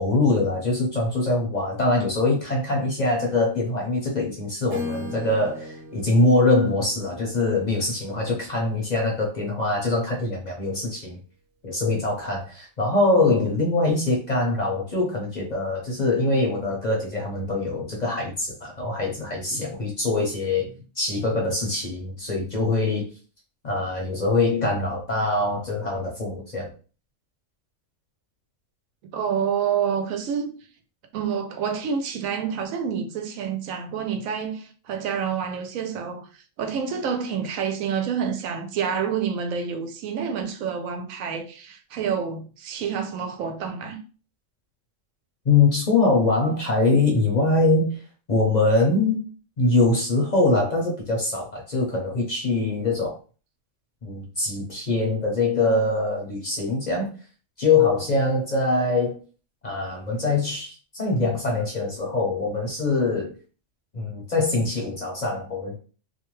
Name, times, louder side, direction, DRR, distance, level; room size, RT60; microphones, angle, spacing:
voice 1, 0.0-11.2 11.6-20.7 21.0-23.1 23.6-26.7 45.4-48.0 48.3-49.2 49.6-53.2 54.0-57.1 57.6-59.2 59.6-63.3 63.9-65.8, left 2 dB, 45° left, 0.7 m, -23 dB
Acoustic guitar / Strum, 4.7-8.7, left 1 dB, 60° right, 0.9 m, -39 dB
voice 2, 29.1-30.6 31.1-36.3 36.6-44.0, right 7 dB, 90° right, 1.0 m, -28 dB
2.5 x 2.2 x 3.0 m
omnidirectional pair, 1.3 m